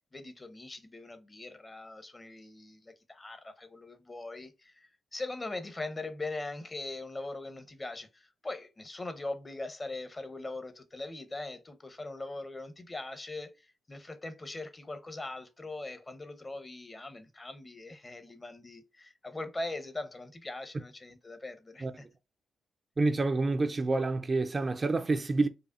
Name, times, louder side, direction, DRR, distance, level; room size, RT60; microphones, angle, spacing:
voice 1, 0.1-22.0, left 2 dB, 30° left, 0.9 m, -41 dB
voice 2, 23.0-25.5, right 3 dB, 40° right, 0.5 m, -28 dB
4.8 x 2.4 x 2.4 m
hypercardioid pair, 45°, 0 cm